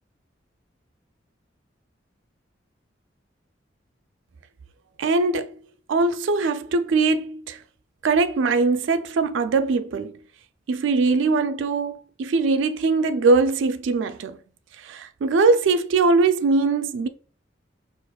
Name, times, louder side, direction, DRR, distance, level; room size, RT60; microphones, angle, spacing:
voice 1, 5.0-5.5 5.9-7.6 8.0-10.2 10.7-14.4 14.8-17.1, right 3 dB, 80° right, 0.4 m, -21 dB
5.7 x 2.4 x 2.2 m
head